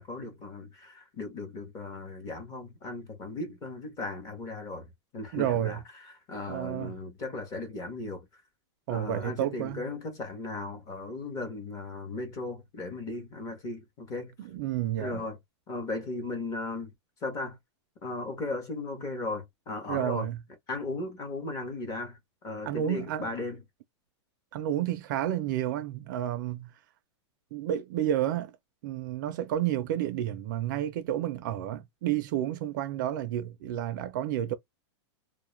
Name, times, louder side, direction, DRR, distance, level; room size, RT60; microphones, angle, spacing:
voice 1, 0.0-4.9 5.1-8.3 8.9-14.3 15.0-15.4 15.7-16.9 17.2-17.6 18.0-20.3 20.7-22.2 22.4-23.6, left 3 dB, 25° left, 0.9 m, -36 dB
voice 2, 5.3-5.8 6.5-6.9 8.9-9.9 14.4-15.2 19.9-20.4 22.6-23.3 24.5-26.7 27.5-28.5 28.8-34.5, right 11 dB, 45° right, 0.4 m, -30 dB
2.3 x 2.0 x 3.0 m
supercardioid pair, 165°, 15 cm